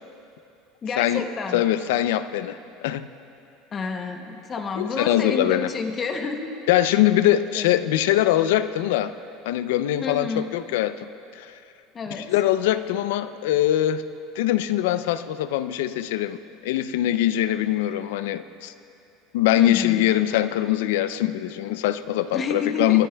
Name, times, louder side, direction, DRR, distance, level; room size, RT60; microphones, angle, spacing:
voice 1, 0.8-1.7 3.7-6.5 6.9-7.0 7.3-7.7 10.0-10.5 11.9-12.3 19.6-20.1 22.3-23.1, left 4 dB, 20° left, 5 dB, 0.8 m, -30 dB
voice 2, 1.5-3.1 4.8-5.7 6.7-9.1 9.5-11.1 11.4-11.5 12.2-14.0 14.4-16.4 16.6-18.7 19.3-23.1, left 13 dB, 80° left, 13 dB, 0.4 m, -22 dB
22.5 x 13.0 x 2.3 m, 2.8 s
cardioid pair, 175°, 0 cm